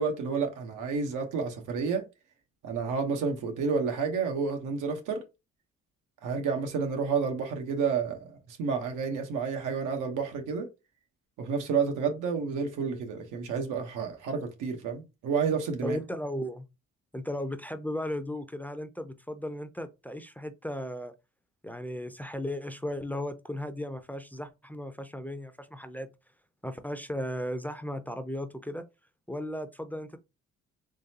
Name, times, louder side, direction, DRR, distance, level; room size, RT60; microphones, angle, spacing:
voice 1, 0.0-2.0 2.6-5.2 6.2-10.7 11.4-16.0, right 5 dB, 90° right, 1.1 m, -30 dB
voice 2, 15.8-16.6 17.1-21.1 21.6-26.1 26.6-28.8 29.3-30.2, left 1 dB, 5° left, 0.5 m, -36 dB
3.9 x 3.1 x 2.8 m
cardioid pair, 90°, 30 cm